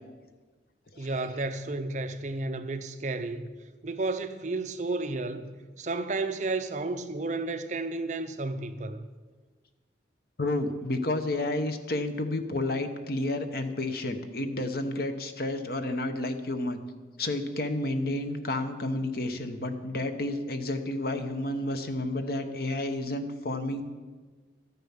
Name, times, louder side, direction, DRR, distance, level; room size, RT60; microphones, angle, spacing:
voice 1, 1.0-3.5 3.8-5.5 5.8-9.1, right 3 dB, 40° right, 0.6 m, -32 dB
voice 2, 10.4-16.8 17.2-23.8, left 2 dB, 55° left, 1.0 m, -31 dB
13.0 x 9.4 x 5.7 m
head